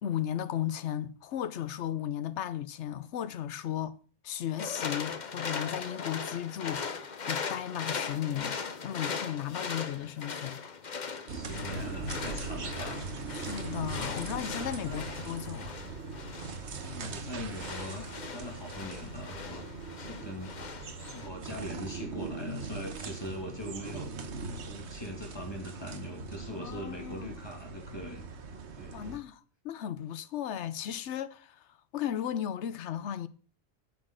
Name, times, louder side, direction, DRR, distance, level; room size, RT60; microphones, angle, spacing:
voice 1, 0.0-4.0 4.2-10.6 13.3-15.8 26.6-27.3 28.9-29.4 29.6-31.6 31.9-33.3, left 10 dB, 80° left, 1.0 m, -35 dB
sound 1, 4.6-21.3, left 5 dB, 45° left, 1.0 m, -39 dB
voice 2, 11.3-13.0 14.8-15.0 16.8-19.7 20.0-20.5 21.1-28.2 28.8-29.2, equal, 20° left, 2.8 m, -41 dB
sound 2, 11.3-29.2, right 4 dB, 70° right, 1.4 m, -41 dB
9.8 x 6.1 x 6.4 m
omnidirectional pair, 1.2 m